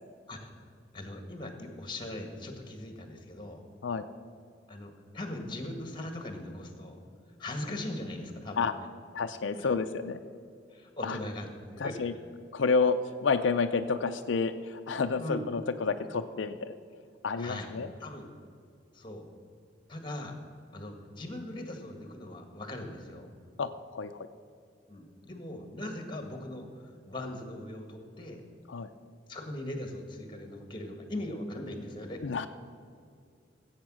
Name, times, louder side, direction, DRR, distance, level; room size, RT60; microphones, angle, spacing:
voice 1, 0.9-3.6 4.7-7.0 7.4-8.7 9.6-9.7 10.7-12.1 15.2-15.4 17.4-17.7 18.0-18.3 18.9-19.3 19.9-20.4 20.7-23.3 24.9-28.4 29.3-32.2, left 1 dB, 25° left, 5 dB, 1.6 m, -40 dB
voice 2, 9.1-10.2 11.0-11.2 11.8-12.1 12.5-16.7 17.2-17.9 23.6-24.3 28.7-28.9 32.2-32.5, left 4 dB, 85° left, 8 dB, 0.5 m, -29 dB
15.0 x 8.1 x 6.2 m, 2.3 s
head